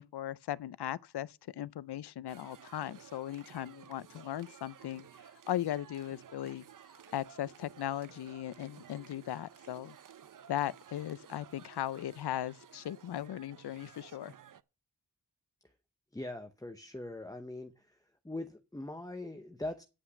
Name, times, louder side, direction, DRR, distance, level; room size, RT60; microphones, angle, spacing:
voice 1, 0.0-5.1 5.5-6.6 7.1-10.0 10.5-14.3, left 12 dB, 75° left, 0.5 m, -38 dB
sound 1, 2.3-14.6, right 9 dB, 55° right, 0.6 m, -55 dB
voice 2, 16.1-18.0 18.2-19.8, left 2 dB, 10° left, 0.8 m, -41 dB
9.8 x 5.7 x 8.2 m
wide cardioid pair, 90°, 40 cm